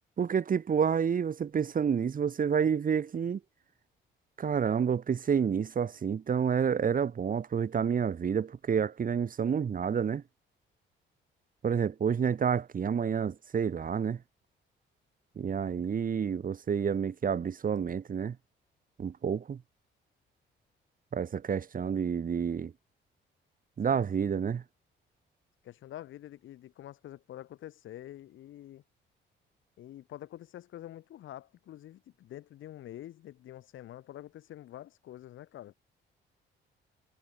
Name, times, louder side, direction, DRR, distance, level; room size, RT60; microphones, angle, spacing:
voice 1, 0.2-3.4 4.4-10.2 11.6-14.2 15.4-18.4 19.0-19.6 21.1-22.7 23.8-24.6, right 7 dB, 45° right, 1.7 m, -29 dB
voice 2, 23.8-24.3 25.6-28.8 29.8-35.7, left 13 dB, 80° left, 4.1 m, -47 dB
cardioid pair, 90°, 20 cm